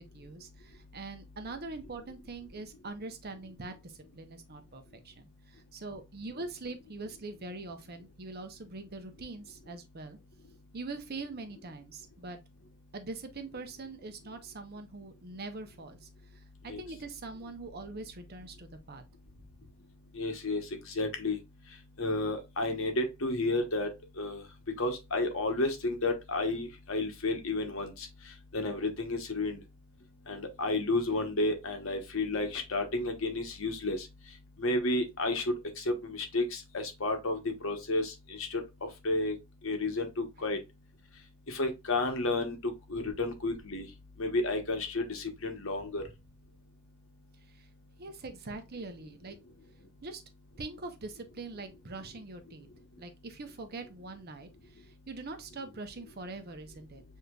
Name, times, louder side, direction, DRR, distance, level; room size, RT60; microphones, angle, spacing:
voice 1, 0.0-10.2 10.7-12.4 12.9-19.0 47.5-47.7 48.0-49.4 50.0-50.2 50.6-52.7 53.0-57.0, right 3 dB, 50° right, 0.8 m, -43 dB
voice 2, 20.2-20.6 21.0-21.4 22.0-23.9 24.2-24.4 24.8-28.1 28.5-29.6 30.3-34.0 34.6-39.4 39.6-40.6 41.5-43.9 44.2-46.0, left 2 dB, 70° left, 1.1 m, -31 dB
6.6 x 2.8 x 2.3 m
head